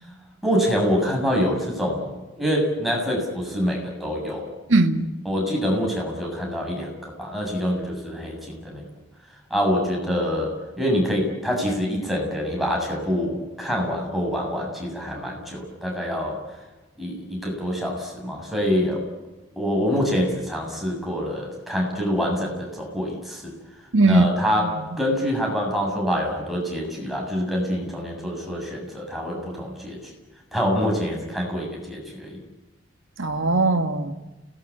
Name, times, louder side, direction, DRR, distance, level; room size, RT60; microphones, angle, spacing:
voice 1, 0.4-4.5 5.3-8.8 9.5-16.4 17.0-19.0 19.6-23.5 24.0-30.1 30.5-32.4, equal, ahead, -1 dB, 7.2 m, -25 dB
voice 2, 4.7-5.1 23.9-24.2 24.8-24.9 33.2-34.1, right 3 dB, 75° right, 5 dB, 1.8 m, -19 dB
29.5 x 18.5 x 8.6 m, 1.1 s
head